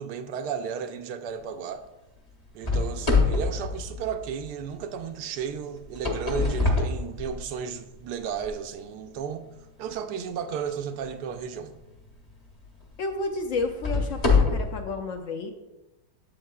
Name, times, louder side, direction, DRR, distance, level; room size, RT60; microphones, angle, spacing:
voice 1, 0.0-1.8 2.5-11.8, right 7 dB, 80° right, 1.1 m, -34 dB
sound 1, 2.6-4.6 5.8-7.7 8.4-8.5 9.2-9.3 11.9-12.1 12.6-12.7 13.6-14.8, left 3 dB, 30° left, 1.0 m, -25 dB
voice 2, 13.0-15.5, left 3 dB, 70° left, 0.7 m, -31 dB
7.8 x 7.3 x 2.3 m
omnidirectional pair, 1.8 m